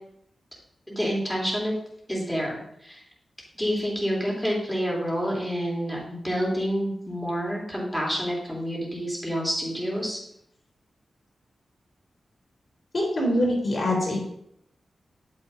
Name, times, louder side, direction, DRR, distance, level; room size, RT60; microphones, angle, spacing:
voice 1, 0.9-1.7 2.1-3.0 3.6-10.2, equal, 5° left, -3 dB, 3.3 m, -28 dB
voice 2, 12.9-14.2, left 1 dB, 55° left, -2 dB, 3.3 m, -24 dB
8.8 x 7.5 x 2.7 m, 0.73 s
cardioid pair, 55°, 0 cm